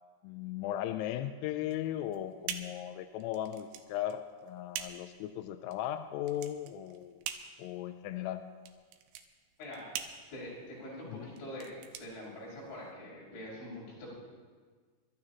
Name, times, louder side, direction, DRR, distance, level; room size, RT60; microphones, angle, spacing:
voice 1, 0.2-7.2 7.6-8.4 11.1-11.3, left 12 dB, 85° left, 8 dB, 2.8 m, -37 dB
sound 1, 1.6-12.9, right 10 dB, 85° right, 3.2 m, -45 dB
voice 2, 9.6-9.9 10.3-14.1, left 1 dB, 65° left, -7 dB, 7.9 m, -44 dB
28.0 x 13.0 x 2.9 m, 1.5 s
omnidirectional pair, 5.6 m